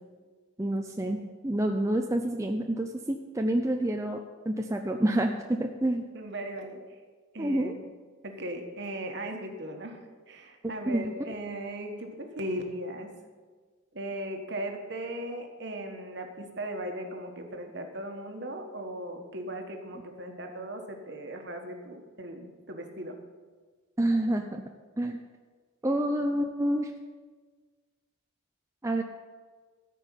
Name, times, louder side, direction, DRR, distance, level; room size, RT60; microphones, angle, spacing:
voice 1, 0.6-4.2 4.5-6.0 7.4-7.7 10.9-11.1 24.0-24.6 25.0-25.2 25.8-26.9 28.8-29.0, right 1 dB, 15° right, 3 dB, 0.5 m, -28 dB
voice 2, 6.1-7.0 7.3-7.8 8.2-13.1 13.9-23.2, right 1 dB, 55° right, 4 dB, 1.5 m, -38 dB
13.5 x 5.4 x 9.0 m, 1.5 s
head